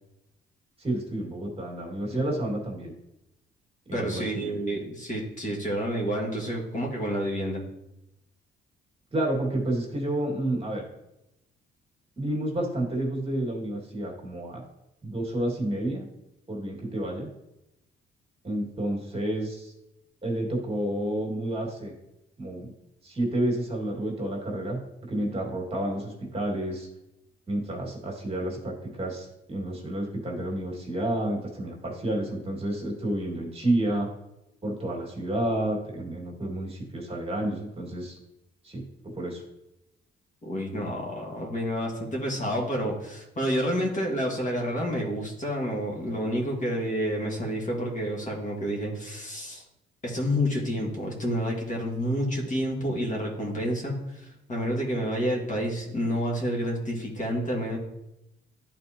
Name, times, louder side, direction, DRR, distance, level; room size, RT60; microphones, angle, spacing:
voice 1, 0.8-2.9 3.9-4.6 9.1-10.8 12.2-14.6 15.0-16.0 16.5-17.3 18.4-19.7 20.2-21.9 22.4-22.7 23.0-26.9 27.5-34.1 34.6-38.2 38.6-39.4, right 1 dB, 30° right, -1 dB, 2.1 m, -30 dB
voice 2, 3.9-7.6 40.5-49.6 50.0-57.8, equal, 40° left, -1 dB, 1.8 m, -29 dB
11.0 x 4.3 x 2.9 m, 0.89 s
cardioid pair, 90°, 20 cm